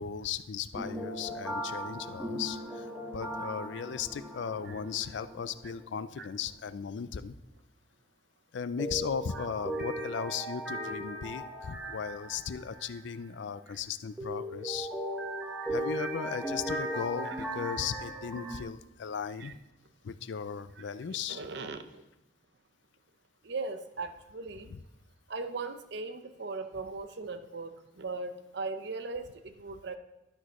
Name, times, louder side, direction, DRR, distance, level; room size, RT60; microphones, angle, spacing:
voice 1, 0.0-2.9 3.1-7.3 8.5-14.9 15.7-19.6 20.0-21.4, left 7 dB, 70° left, 14 dB, 0.4 m, -37 dB
sound 1, 0.7-6.1 6.3-6.4 8.8-12.9 14.2-18.6, equal, 5° right, 1.1 m, -37 dB
voice 2, 21.3-22.0 23.4-24.7 25.3-30.0, right 3 dB, 60° right, 9 dB, 0.7 m, -39 dB
12.0 x 6.1 x 3.0 m, 0.95 s
head